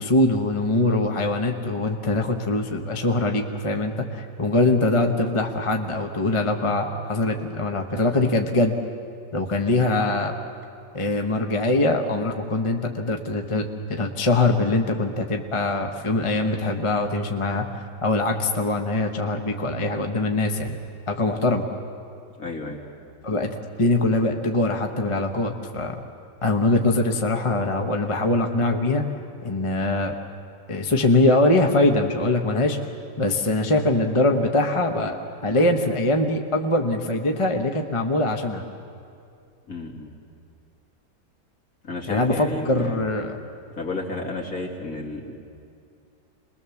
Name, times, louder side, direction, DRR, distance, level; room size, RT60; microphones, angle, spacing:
voice 1, 0.0-8.8 9.3-10.3 10.9-17.6 18.0-20.8 21.1-21.6 23.2-23.5 23.8-26.0 26.4-29.0 29.4-30.1 30.7-32.8 33.2-35.2 35.4-38.6 42.1-43.4, left 2 dB, 20° left, 3 dB, 1.0 m, -22 dB
voice 2, 22.4-22.8 39.7-40.1 41.8-43.0 43.8-45.3, left 2 dB, 55° left, -1 dB, 3.0 m, -32 dB
28.0 x 21.0 x 7.2 m, 2.5 s
omnidirectional pair, 1.8 m